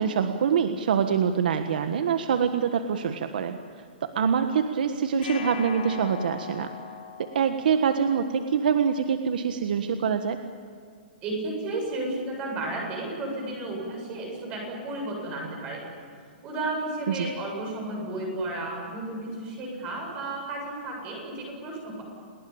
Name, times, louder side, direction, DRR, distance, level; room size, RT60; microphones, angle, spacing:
voice 1, 0.0-3.6 4.0-6.7 7.2-10.4 17.1-17.3, right 7 dB, 60° right, 7 dB, 1.4 m, -25 dB
sound 1, 5.2-8.3, left 7 dB, 65° left, 3.9 m, -40 dB
voice 2, 11.2-15.8 16.4-22.0, right 2 dB, 20° right, 0 dB, 7.8 m, -33 dB
29.0 x 19.0 x 8.9 m, 2.3 s
hypercardioid pair, 175°, 5 cm